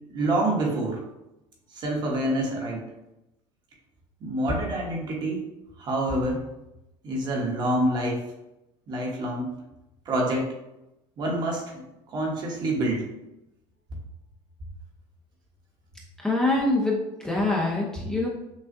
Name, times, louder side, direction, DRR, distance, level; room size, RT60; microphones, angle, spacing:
voice 1, 0.1-1.0 1.7-2.9 4.2-5.4 5.8-6.4 7.0-8.3 8.9-9.5 10.0-10.5 11.2-13.0, right 1 dB, 40° right, -1 dB, 1.2 m, -27 dB
voice 2, 16.2-18.3, left 2 dB, 5° left, -3 dB, 0.7 m, -24 dB
6.2 x 2.3 x 2.6 m, 0.91 s
cardioid pair, 130°, 11 cm